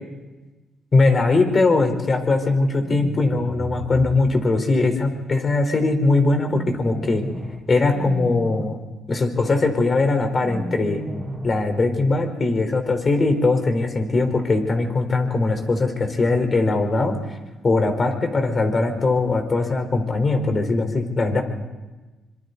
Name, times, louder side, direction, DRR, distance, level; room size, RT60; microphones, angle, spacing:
voice 1, 0.9-7.2 7.7-8.8 9.1-11.0 11.4-17.2 17.6-21.4, left 3 dB, 35° left, 6 dB, 4.3 m, -20 dB
sound 1, 2.7-4.1 6.5-7.6 7.9-8.6 10.4-11.6, right 1 dB, 10° right, 5.3 m, -33 dB
25.5 x 25.0 x 4.1 m, 1.2 s
cardioid pair, 90°, 0 cm